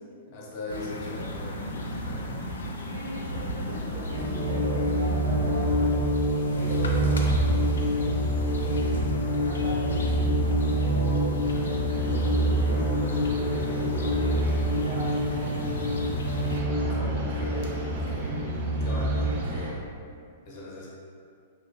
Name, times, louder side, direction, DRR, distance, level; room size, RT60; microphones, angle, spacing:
voice 1, 0.3-2.4 16.4-18.4 18.8-19.8 20.5-20.9, left 1 dB, 45° left, -5 dB, 0.7 m, -39 dB
sound 1, 0.7-16.6, left 1 dB, 75° left, 0.3 m, -33 dB
voice 2, 2.4-6.1 6.5-7.6 7.9-8.1 8.5-11.3 12.0-13.1 13.5-15.8 16.6-17.1, right 1 dB, 75° right, -6 dB, 0.7 m, -40 dB
sound 2, 4.1-19.3, right 1 dB, 35° right, 1.5 m, -27 dB
sound 3, 11.4-19.7, right 2 dB, 55° right, 0.4 m, -35 dB
2.6 x 2.1 x 2.8 m, 2.3 s
figure-of-eight pair, 105°, 0 cm